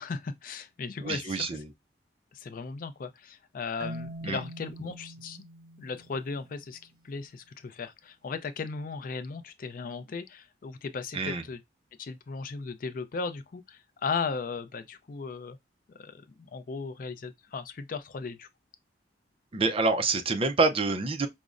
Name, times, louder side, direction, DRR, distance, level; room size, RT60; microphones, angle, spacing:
voice 1, 0.0-1.5 2.3-5.4 5.8-6.8 7.0-11.6 12.0-15.6 15.9-18.5, left 4 dB, 50° left, 0.4 m, -36 dB
voice 2, 1.0-1.6 4.2-4.4 11.1-11.4 19.5-21.3, right 3 dB, 30° right, 0.4 m, -27 dB
Marimba xylophone, 3.8-6.8, equal, 50° right, 0.8 m, -43 dB
5.1 x 2.0 x 2.4 m
head